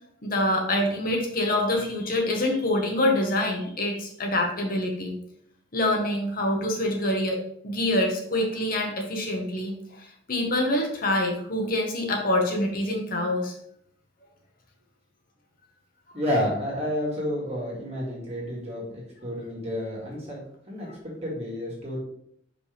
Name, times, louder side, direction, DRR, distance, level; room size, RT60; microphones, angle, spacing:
voice 1, 0.2-5.2 5.7-13.5, left 1 dB, 50° left, 1 dB, 1.1 m, -26 dB
voice 2, 16.1-22.0, equal, 35° right, -4 dB, 2.1 m, -30 dB
5.5 x 5.1 x 3.4 m, 0.69 s
head